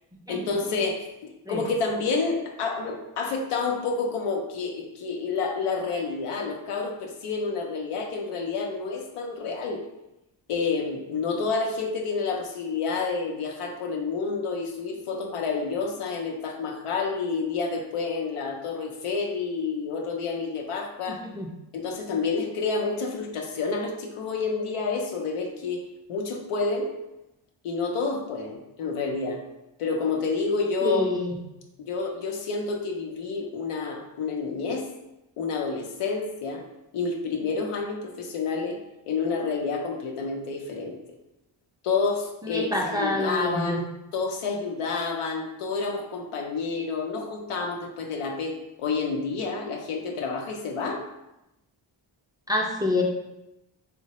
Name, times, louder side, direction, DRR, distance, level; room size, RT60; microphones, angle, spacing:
voice 1, 0.3-9.8 10.5-21.2 21.7-25.8 26.1-27.0 27.6-29.4 29.8-31.1 31.8-34.9 35.4-36.6 36.9-38.8 39.1-41.0 41.8-43.9 44.1-51.0, left 4 dB, 85° left, 2 dB, 0.6 m, -29 dB
voice 2, 21.1-21.5 30.8-31.3 42.5-43.8 52.5-53.0, left 2 dB, 10° right, -2 dB, 0.4 m, -26 dB
3.0 x 2.1 x 2.8 m, 0.91 s
cardioid pair, 50°, 50 cm